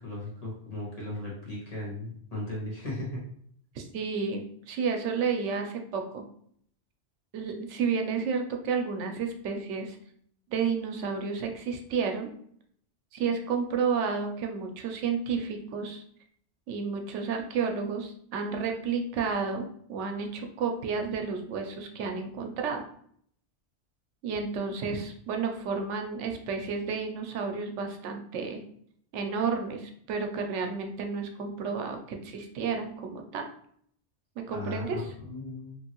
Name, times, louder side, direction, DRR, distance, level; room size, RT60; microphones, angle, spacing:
voice 1, 0.0-3.2 34.5-35.9, left 2 dB, 35° left, -6 dB, 1.2 m, -37 dB
voice 2, 3.7-6.2 7.3-10.0 10.5-12.3 13.1-16.0 16.7-22.8 24.2-28.6 29.1-33.4 34.4-35.1, right 5 dB, 85° right, 4 dB, 0.9 m, -31 dB
3.1 x 2.6 x 2.8 m, 0.63 s
omnidirectional pair, 1.2 m